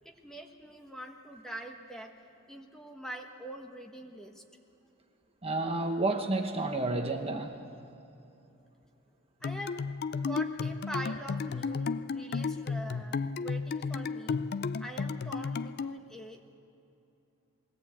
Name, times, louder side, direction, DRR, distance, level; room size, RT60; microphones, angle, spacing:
voice 1, 0.0-2.1 2.5-4.4 9.4-10.0 10.2-14.4 14.8-16.4, right 1 dB, 5° left, 2 dB, 1.3 m, -44 dB
voice 2, 5.4-7.5, right 2 dB, 30° right, 4 dB, 1.2 m, -30 dB
sound 1, 9.4-16.0, left 4 dB, 50° left, 0.4 m, -33 dB
21.0 x 17.5 x 8.6 m, 2.8 s
head